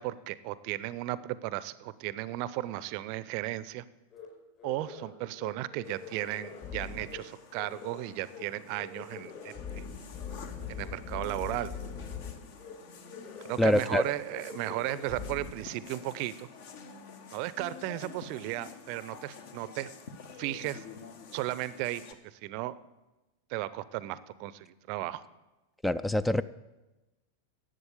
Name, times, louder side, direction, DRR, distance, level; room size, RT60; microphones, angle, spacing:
voice 1, 0.0-3.8 4.6-9.8 10.7-11.7 13.4-16.5 17.3-19.9 20.4-20.8 21.3-22.8 23.5-25.2, right 16 dB, 45° right, 17 dB, 0.6 m, -35 dB
sound 1, 4.1-4.3 4.6-5.1 5.3-5.5 5.8-7.2 7.5-8.0 8.3-8.4 8.7-12.3 12.6-12.7 13.1-13.6 13.8-14.0 14.3-15.5, left 6 dB, 30° left, 4.6 m, -42 dB
sound 2, 5.8-22.1, left 5 dB, 50° left, 1.2 m, -49 dB
voice 2, 13.6-14.0 25.8-26.4, left 1 dB, 5° left, 16 dB, 0.3 m, -25 dB
11.5 x 8.1 x 8.3 m, 1.1 s
figure-of-eight pair, 90°, 0 cm